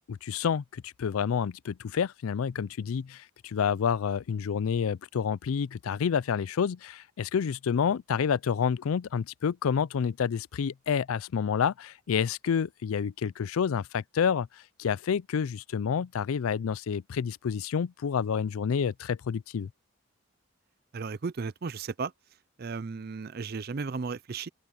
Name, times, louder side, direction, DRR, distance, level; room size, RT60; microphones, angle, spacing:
voice 1, 0.1-14.5 14.8-19.7, left 7 dB, 85° left, 0.4 m, -29 dB
voice 2, 20.9-22.1 22.6-24.5, right 4 dB, 45° right, 0.5 m, -34 dB
open air
head